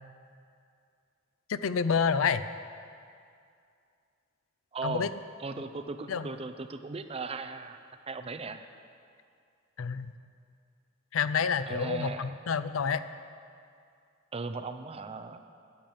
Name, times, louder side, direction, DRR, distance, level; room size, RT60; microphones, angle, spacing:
voice 1, 1.5-2.4 4.8-5.1 6.1-6.3 9.8-10.1 11.1-13.0, left 6 dB, 90° left, 13 dB, 0.5 m, -28 dB
voice 2, 4.7-5.1 5.4-8.6 11.7-12.3 14.3-15.4, right 3 dB, 30° right, 8 dB, 0.5 m, -37 dB
10.5 x 7.1 x 9.3 m, 2.4 s
head